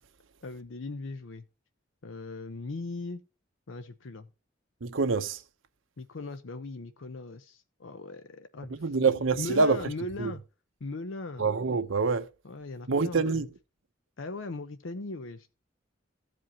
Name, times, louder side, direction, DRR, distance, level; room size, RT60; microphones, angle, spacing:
voice 1, 0.4-1.5 2.0-3.2 3.7-4.3 6.0-10.4 10.8-11.5 12.4-13.4 14.2-15.5, left 3 dB, 75° left, 0.6 m, -39 dB
voice 2, 4.8-5.4 8.7-9.9 10.2-10.3 11.4-12.3 12.9-13.5, right 4 dB, 80° right, 0.8 m, -26 dB
15.0 x 5.1 x 2.8 m
head